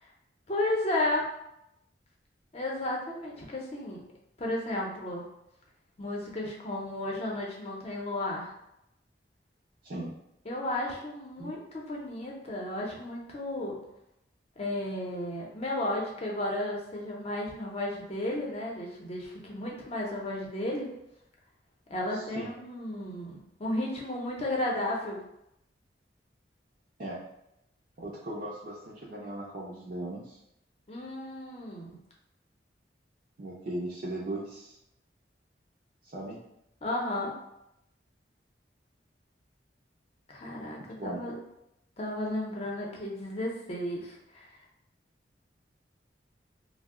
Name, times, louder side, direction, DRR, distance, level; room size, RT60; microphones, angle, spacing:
voice 1, 0.5-1.3 2.5-4.0 4.4-5.2 6.0-8.5 10.5-13.8 14.6-20.9 21.9-25.2 30.9-31.9 36.8-37.3 40.3-41.3 42.0-44.5, left 1 dB, 35° left, -2 dB, 0.6 m, -33 dB
voice 2, 22.1-22.5 27.0-27.2 28.0-30.4 33.4-34.8 36.0-36.4 41.0-41.2, right 1 dB, 50° right, -6 dB, 0.5 m, -38 dB
2.7 x 2.0 x 3.6 m, 0.82 s
head